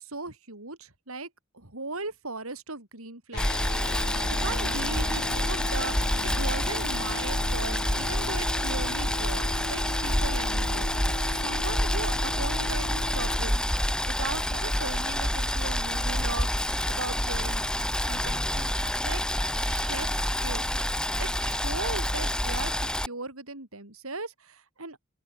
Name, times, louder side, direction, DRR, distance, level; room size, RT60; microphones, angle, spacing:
voice 1, 0.0-3.7 4.4-13.7 14.0-19.2 19.5-20.7 21.2-25.0, right 3 dB, 75° right, 5.8 m, -38 dB
sound 1, 3.3-13.4, left 3 dB, 50° left, 0.8 m, -38 dB
Boiling, 3.4-23.1, left 1 dB, 5° left, 1.3 m, -28 dB
open air
head